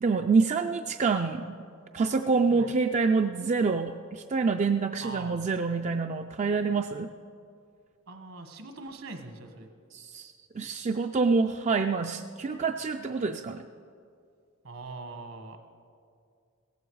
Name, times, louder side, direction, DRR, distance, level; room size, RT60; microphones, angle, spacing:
voice 1, 0.0-1.6 1.9-7.1 9.9-13.6, right 4 dB, 35° right, 6 dB, 0.4 m, -27 dB
voice 2, 5.0-5.5 8.1-9.7 14.6-15.6, right 3 dB, 75° right, 6 dB, 1.5 m, -42 dB
16.5 x 15.0 x 4.7 m, 2.3 s
head